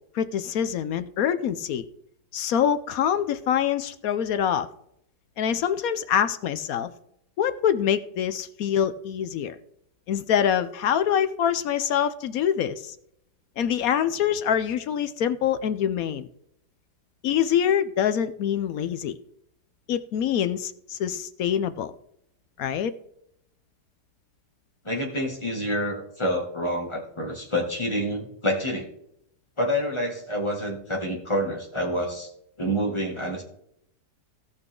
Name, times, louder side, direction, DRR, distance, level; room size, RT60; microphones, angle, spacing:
voice 1, 0.1-1.9 2.3-4.7 5.4-6.9 7.4-9.6 10.1-13.0 13.6-16.3 17.2-19.2 19.9-21.9 22.6-22.9, left 9 dB, 70° left, 13 dB, 1.0 m, -25 dB
voice 2, 24.8-28.9 29.6-32.3 32.6-33.4, equal, 15° left, -1 dB, 2.2 m, -27 dB
17.5 x 6.0 x 3.7 m, 0.74 s
omnidirectional pair, 1.8 m